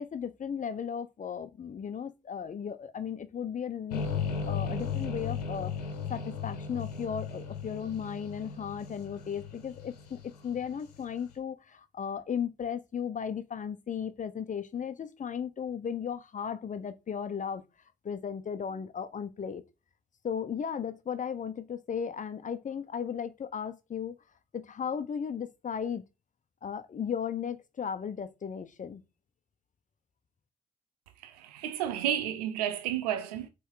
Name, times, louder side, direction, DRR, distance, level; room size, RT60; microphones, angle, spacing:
voice 1, 0.0-4.0 4.4-5.7 6.1-17.6 18.0-19.6 20.2-24.2 24.5-26.0 26.6-29.0, left 7 dB, 40° left, 1.1 m, -35 dB
sound 1, 3.9-11.0, left 6 dB, 80° left, 1.3 m, -36 dB
voice 2, 31.2-33.5, right 10 dB, 80° right, 0.8 m, -31 dB
7.9 x 3.6 x 4.9 m
figure-of-eight pair, 40°, 20 cm